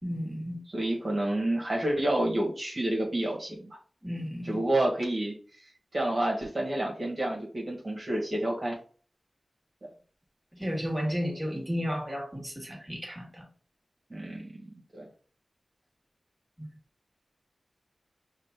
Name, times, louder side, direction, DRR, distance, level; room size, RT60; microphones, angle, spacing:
voice 1, 0.0-0.6 4.0-4.6 10.5-13.4 16.6-16.7, equal, 10° right, 1.8 m, -33 dB
voice 2, 0.7-3.8 4.4-5.3 5.9-8.8 14.1-15.0, right 1 dB, 45° right, 1.4 m, -29 dB
5.1 x 2.5 x 3.5 m
cardioid pair, 45°, 0 cm